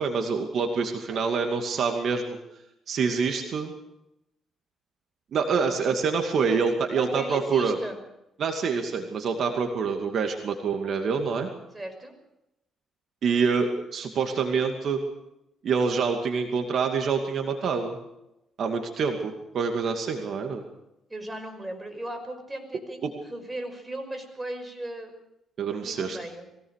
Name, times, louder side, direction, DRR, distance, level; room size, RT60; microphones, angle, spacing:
voice 1, 0.0-2.4 2.9-3.7 5.3-7.8 8.4-11.5 13.2-15.0 15.6-18.0 18.6-20.6 23.0-23.1 25.6-26.2, right 5 dB, 60° right, 4 dB, 2.5 m, -26 dB
voice 2, 5.6-6.1 6.5-6.6 7.0-8.0 11.7-12.1 21.1-23.0 23.3-25.2 25.7-26.5, right 1 dB, 15° right, 5 dB, 5.7 m, -37 dB
22.5 x 18.0 x 6.6 m, 0.86 s
cardioid pair, 90°, 0 cm